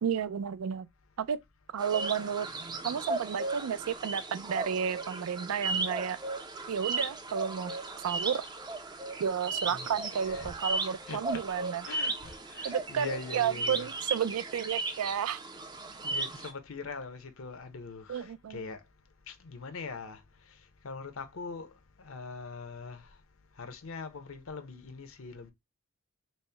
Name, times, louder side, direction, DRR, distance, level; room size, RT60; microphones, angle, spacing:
voice 1, 0.0-0.9 1.2-1.4 1.7-2.5 2.8-6.2 6.7-7.7 8.0-8.4 9.2-11.8 12.6-15.4 18.1-18.7, right 7 dB, 85° right, 0.4 m, -32 dB
sound 1, 1.8-16.5, right 3 dB, 20° right, 0.4 m, -36 dB
voice 2, 9.7-10.5 11.1-11.3 11.8-13.9 16.0-18.8 19.3-23.1 23.6-25.5, left 4 dB, 70° left, 0.7 m, -42 dB
4.2 x 2.0 x 3.2 m
head